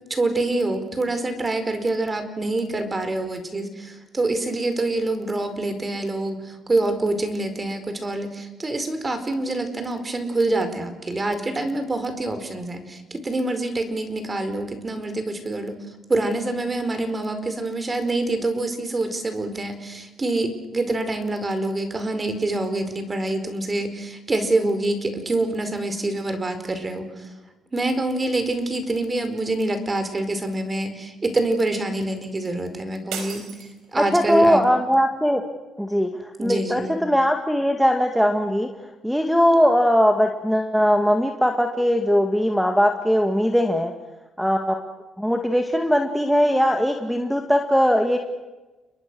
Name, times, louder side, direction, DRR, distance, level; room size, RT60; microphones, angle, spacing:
voice 1, 0.1-15.7 16.1-27.3 27.7-33.4 33.9-34.6 36.4-37.0, right 2 dB, 25° right, 8 dB, 4.8 m, -26 dB
sound 1, 33.1-34.4, right 6 dB, 85° right, 5.0 m, -36 dB
voice 2, 33.9-35.4 35.8-38.7 39.0-43.9 44.4-44.9 45.2-48.2, equal, ahead, 5 dB, 2.2 m, -20 dB
29.5 x 22.5 x 6.4 m, 1.1 s
cardioid pair, 90°, 0 cm